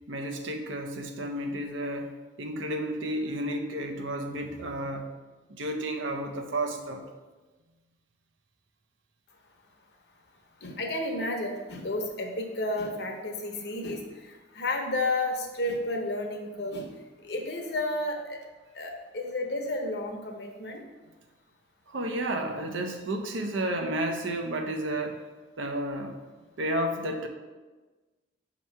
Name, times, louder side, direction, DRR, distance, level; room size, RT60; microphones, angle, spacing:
voice 1, 0.1-2.1 2.4-5.1 5.5-7.0 21.9-25.2 25.6-26.2 26.6-27.3, right 1 dB, 90° right, 5 dB, 0.7 m, -32 dB
voice 2, 10.6-16.9 17.2-18.4 18.7-20.8, left 2 dB, 60° left, 2 dB, 0.8 m, -32 dB
5.9 x 3.0 x 5.4 m, 1.3 s
head